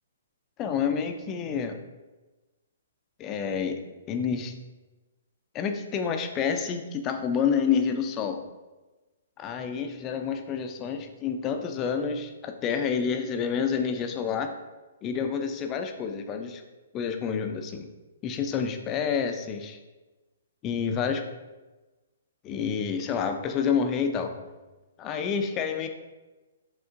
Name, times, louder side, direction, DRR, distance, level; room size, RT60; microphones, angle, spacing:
voice 1, 0.6-1.8 3.2-4.5 5.5-8.4 9.4-14.5 15.0-16.6 16.9-17.9 18.2-19.8 20.6-21.2 22.4-24.3 25.0-25.9, left 6 dB, 25° left, 6 dB, 0.4 m, -28 dB
5.0 x 3.6 x 2.5 m, 1.2 s
hypercardioid pair, 135°, 0 cm